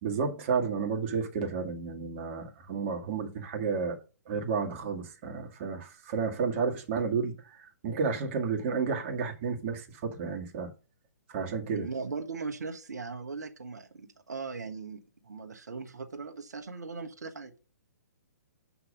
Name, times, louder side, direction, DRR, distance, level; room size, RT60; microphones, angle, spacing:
voice 1, 0.0-4.0 4.3-10.7 11.3-11.9, right 5 dB, 40° right, 2.0 m, -31 dB
voice 2, 11.7-17.6, right 4 dB, 75° right, 1.4 m, -39 dB
7.2 x 5.7 x 5.2 m
figure-of-eight pair, 130°, 9 cm